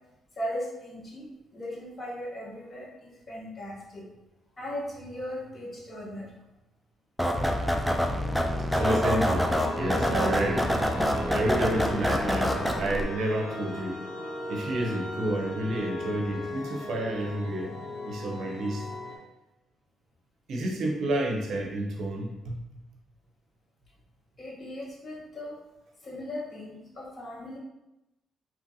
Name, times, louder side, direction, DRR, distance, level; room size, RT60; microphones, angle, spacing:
voice 1, 0.4-4.0 4.6-6.3 24.4-25.6 26.0-27.6, equal, 35° left, -4 dB, 1.0 m, -38 dB
sound 1, 7.2-13.0, equal, ahead, 0.3 m, -26 dB
sound 2, 8.7-19.2, left 2 dB, 60° left, 0.8 m, -37 dB
voice 2, 8.7-10.7 11.3-14.0 14.5-17.7 18.0-18.9 20.5-22.6, right 1 dB, 65° right, 0 dB, 0.6 m, -30 dB
2.9 x 2.5 x 2.6 m, 0.94 s
cardioid pair, 90°, 0 cm